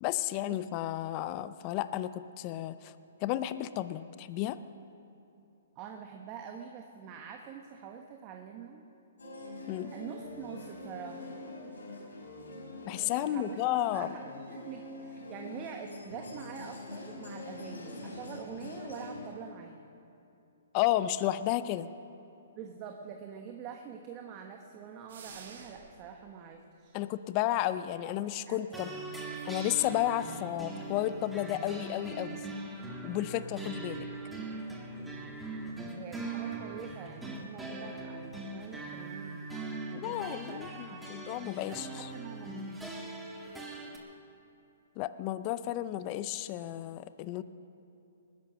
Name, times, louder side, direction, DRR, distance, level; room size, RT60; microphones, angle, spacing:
voice 1, 0.0-2.9 3.2-4.6 9.7-9.9 12.9-14.1 20.7-21.9 26.9-28.9 29.4-32.4 33.0-34.1 40.0-42.1 45.0-47.4, left 14 dB, 35° left, 13 dB, 0.5 m, -32 dB
voice 2, 5.7-8.8 9.9-11.4 13.2-13.6 13.9-19.9 22.5-27.0 28.5-29.0 35.9-41.1 41.4-42.8, right 7 dB, 30° right, 3 dB, 1.1 m, -45 dB
sound 1, 9.2-19.3, left 2 dB, 85° left, 4.4 m, -44 dB
sound 2, 25.1-26.1, right 5 dB, 60° right, 2.2 m, -49 dB
sound 3, 28.7-44.0, right 3 dB, 5° right, 2.0 m, -41 dB
20.0 x 10.5 x 6.3 m, 2.7 s
hypercardioid pair, 135°, 0 cm